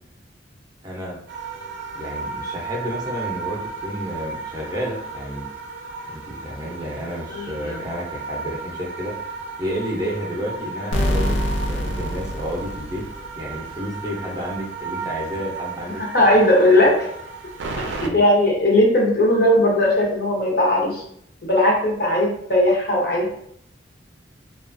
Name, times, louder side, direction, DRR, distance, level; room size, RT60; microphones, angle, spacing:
voice 1, 0.8-1.2 1.9-5.5 6.1-9.1 9.6-11.4 11.6-13.0 13.3-16.0 18.0-18.2, equal, 20° right, -3 dB, 0.5 m, -30 dB
sound 1, 1.3-18.1, right 4 dB, 80° right, 0.3 m, -34 dB
voice 2, 7.3-7.8 16.1-17.1 17.8-21.0 21.4-23.3, left 1 dB, 50° left, -2 dB, 0.8 m, -18 dB
sound 2, 10.9-13.6, equal, 75° left, 0.5 m, -25 dB
2.8 x 2.3 x 2.5 m, 0.67 s
head